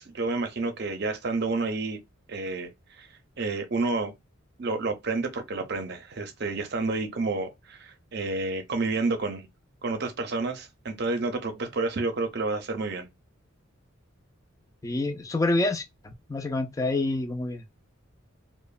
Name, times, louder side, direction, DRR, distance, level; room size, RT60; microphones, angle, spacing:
voice 1, 0.0-2.0 2.3-2.7 3.0-3.1 3.4-4.1 4.6-9.5 9.8-13.1, right 3 dB, 50° right, 0.6 m, -29 dB
voice 2, 14.8-17.7, left 2 dB, 15° left, 0.3 m, -28 dB
3.0 x 2.1 x 2.3 m
head